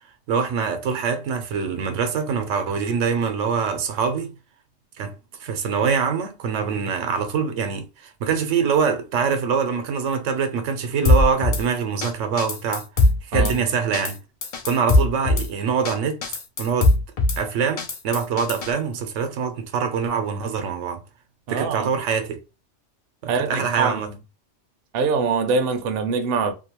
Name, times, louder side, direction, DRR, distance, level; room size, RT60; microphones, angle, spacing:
voice 1, 0.3-4.3 5.0-5.1 5.4-12.9 13.2-14.2 14.6-16.2 16.6-16.9 17.4-21.0 21.5-22.4 23.2-24.1, right 6 dB, 90° right, 1.0 m, -24 dB
Drum kit / Snare drum, 11.0-11.6 12.0-12.1 12.4-13.5 13.9-14.1 14.4-15.5 15.8-15.9 16.2-17.4 17.8-18.7, left 2 dB, 55° left, 0.4 m, -20 dB
voice 2, 21.5-21.9 23.3-24.1 24.9-26.5, right 5 dB, 65° right, 0.7 m, -23 dB
2.6 x 2.2 x 2.8 m
omnidirectional pair, 1.2 m